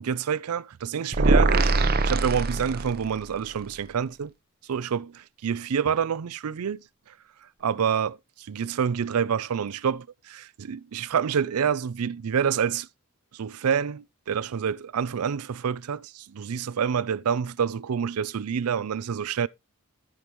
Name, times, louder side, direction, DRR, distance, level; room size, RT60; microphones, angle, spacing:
voice 1, 0.0-1.7 2.0-4.3 4.7-6.8 7.6-12.9 13.3-19.5, right 7 dB, 80° right, 0.4 m, -27 dB
sound 1, 1.1-3.2, right 3 dB, 45° right, 0.7 m, -22 dB
14.0 x 5.2 x 3.0 m
head